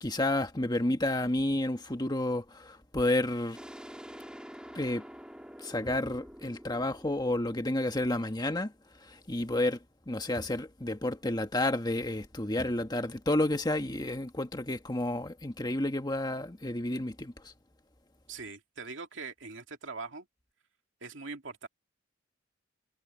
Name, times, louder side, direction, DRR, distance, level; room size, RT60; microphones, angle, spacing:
voice 1, 0.0-3.6 4.7-5.1 5.6-8.7 9.0-9.8 10.1-17.5, left 1 dB, 20° left, 1.6 m, -30 dB
sound 1, 3.5-9.0, equal, 5° right, 4.1 m, -48 dB
voice 2, 18.3-20.3 21.0-21.7, right 4 dB, 65° right, 2.8 m, -42 dB
head